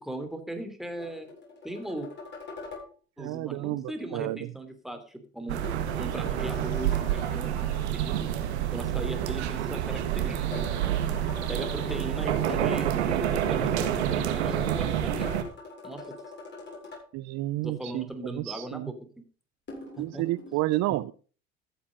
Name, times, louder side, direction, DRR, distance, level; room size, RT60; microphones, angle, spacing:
voice 1, 0.0-1.3 1.6-2.1 3.2-5.6 5.9-8.3 8.7-10.7 11.5-15.3 15.8-16.0 17.6-19.2 20.0-20.2, right 1 dB, ahead, 6 dB, 3.2 m, -38 dB
sound 1, 1.0-2.9 5.6-7.9 10.5-12.6 15.2-17.0 19.7-20.5, left 3 dB, 35° left, 7.5 m, -43 dB
voice 2, 3.2-4.5 17.1-18.9 20.0-21.1, right 17 dB, 55° right, 17 dB, 0.6 m, -31 dB
sound 2, 5.5-15.4, right 10 dB, 90° right, 1.7 m, -28 dB
14.5 x 7.4 x 5.0 m, 0.38 s
hypercardioid pair, 85°, 32 cm